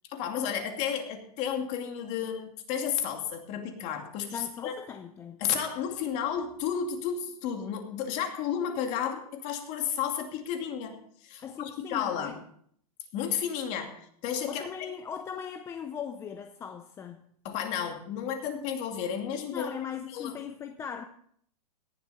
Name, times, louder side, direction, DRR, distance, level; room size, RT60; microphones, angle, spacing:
voice 1, 0.1-4.7 5.4-10.9 11.2-12.4 13.1-14.7 17.4-19.7 20.1-20.3, left 8 dB, 35° left, 2.5 m, -32 dB
voice 2, 4.3-5.5 11.4-12.3 14.5-17.2 19.5-21.0, left 7 dB, 15° left, 0.5 m, -39 dB
17.5 x 11.5 x 4.2 m
supercardioid pair, 155°, 20 cm